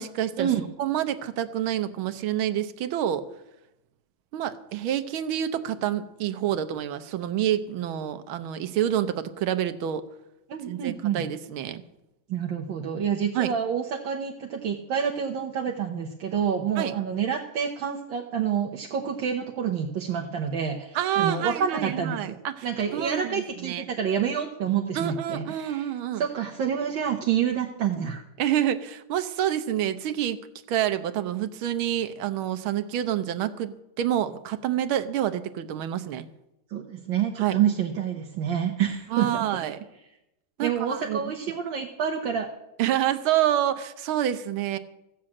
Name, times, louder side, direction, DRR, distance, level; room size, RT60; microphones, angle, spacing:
voice 1, 0.0-0.5 0.8-3.3 4.3-10.0 10.7-11.8 13.4-13.5 16.8-16.9 21.0-23.9 25.0-26.2 28.4-30.4 30.7-36.3 37.4-37.6 39.1-39.8 40.6-41.2 42.8-44.8, right 11 dB, 85° right, 10 dB, 1.7 m, -28 dB
voice 2, 10.5-11.2 12.3-22.4 22.6-25.9 26.2-28.2 36.7-39.5 40.6-42.5, right 8 dB, 70° right, 1 dB, 1.7 m, -28 dB
15.0 x 7.5 x 8.6 m, 0.91 s
omnidirectional pair, 2.2 m